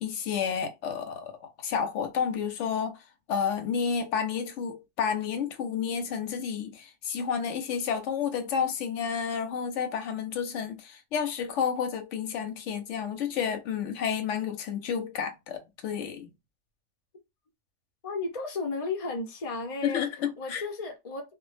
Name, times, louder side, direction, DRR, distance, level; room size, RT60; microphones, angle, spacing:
voice 1, 0.0-3.0 3.3-16.3 19.8-20.6, left 7 dB, 85° left, 0.9 m, -31 dB
voice 2, 18.0-20.1 20.4-21.2, left 3 dB, 35° left, 0.7 m, -33 dB
2.2 x 2.1 x 3.2 m
omnidirectional pair, 1.2 m